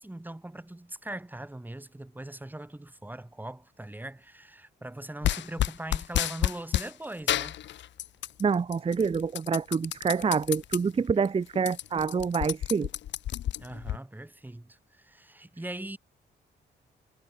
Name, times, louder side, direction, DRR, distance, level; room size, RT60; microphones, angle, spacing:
voice 1, 0.0-7.6 13.6-16.0, right 1 dB, 10° right, 4.5 m, -41 dB
sound 1, 5.2-6.9 7.3-8.4 8.7-10.8 11.2-11.3 11.5-14.0, left 12 dB, 75° left, 1.0 m, -30 dB
voice 2, 8.4-12.9, right 5 dB, 30° right, 0.9 m, -27 dB
cardioid pair, 105°, 19 cm